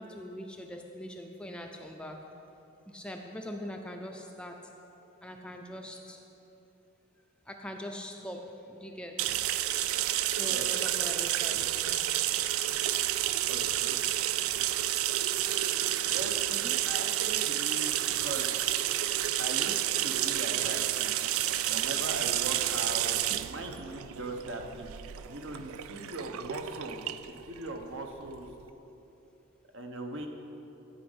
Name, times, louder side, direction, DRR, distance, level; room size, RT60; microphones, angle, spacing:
voice 1, 0.0-2.3 2.9-4.7 5.2-6.2 7.5-9.3 10.3-12.0 16.5-16.8, equal, 5° left, 2 dB, 0.5 m, -42 dB
sound 1, 9.2-28.6, right 13 dB, 75° right, 0.3 m, -30 dB
voice 2, 13.5-14.0 14.3-15.0 16.1-16.4 16.8-18.6 19.4-21.1 21.7-24.9 25.3-28.5 29.7-30.3, right 2 dB, 60° right, 3 dB, 1.0 m, -40 dB
12.5 x 5.2 x 8.0 m, 3.0 s
head